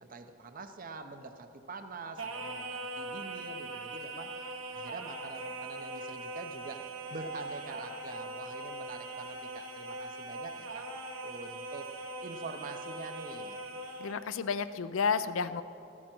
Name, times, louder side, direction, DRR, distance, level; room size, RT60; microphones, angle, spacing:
voice 1, 0.0-4.3 4.7-10.9 11.2-11.9 12.2-13.6, right 3 dB, 40° right, 8 dB, 0.7 m, -45 dB
Singing, 2.2-14.2, right 2 dB, 80° right, 1.2 m, -41 dB
voice 2, 14.0-15.6, left 5 dB, 70° left, 14 dB, 0.5 m, -31 dB
14.5 x 13.5 x 4.5 m, 2.7 s
head